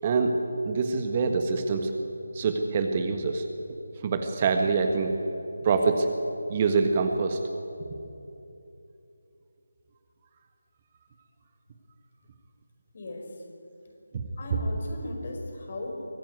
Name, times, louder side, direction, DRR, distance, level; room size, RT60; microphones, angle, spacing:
voice 1, 0.0-0.4 0.6-1.9 2.3-3.4 4.0-5.1 5.6-6.1 6.5-7.4, right 4 dB, 30° right, 5 dB, 1.5 m, -25 dB
voice 2, 12.9-13.4 14.4-16.1, left 2 dB, 45° left, 1 dB, 5.2 m, -37 dB
24.0 x 15.5 x 9.6 m, 2.8 s
figure-of-eight pair, 160°, 0 cm